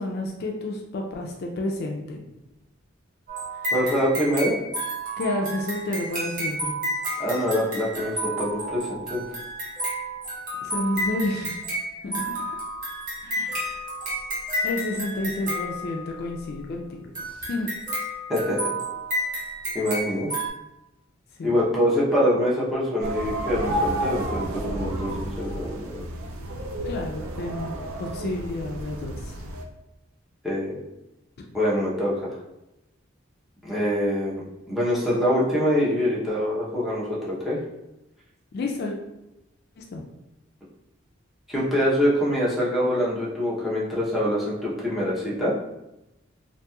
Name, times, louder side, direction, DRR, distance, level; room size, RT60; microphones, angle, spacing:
voice 1, 0.0-2.3 5.2-6.8 10.6-11.6 12.0-12.4 13.2-13.8 14.6-17.7 21.4-21.6 26.8-29.4 38.5-38.9 39.8-40.0, left 2 dB, 50° left, 1 dB, 0.3 m, -30 dB
sound 1, 3.3-16.4 17.2-20.5, right 1 dB, 40° right, 0.9 m, -31 dB
voice 2, 3.7-4.6 7.2-9.2 18.3-18.6 19.7-20.3 21.4-26.0 30.4-30.8 31.5-32.4 33.6-37.6 41.5-45.5, equal, ahead, -8 dB, 0.6 m, -24 dB
sound 2, 23.0-29.6, right 1 dB, 90° right, 0.4 m, -31 dB
2.9 x 2.6 x 2.2 m, 0.92 s
head